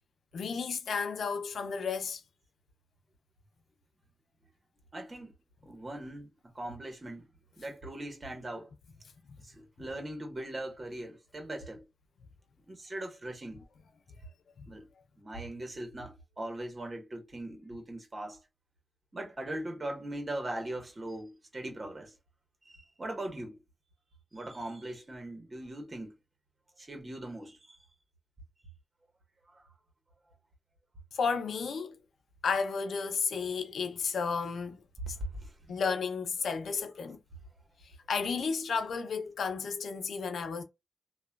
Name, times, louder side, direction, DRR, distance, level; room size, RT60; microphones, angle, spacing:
voice 1, 0.3-2.2 14.6-14.7 31.1-32.0 32.4-35.2 35.7-37.2 38.1-40.6, left 5 dB, 80° left, 0.6 m, -32 dB
voice 2, 4.9-5.3 5.6-6.3 6.5-7.3 7.6-8.7 9.4-11.8 12.7-13.6 14.7-14.9 15.2-18.4 19.1-22.1 22.6-23.6 24.3-26.1 26.8-27.8 29.5-29.7 35.2-35.5, right 1 dB, 35° right, 1.4 m, -40 dB
2.9 x 2.4 x 2.3 m
cardioid pair, 70°, 0 cm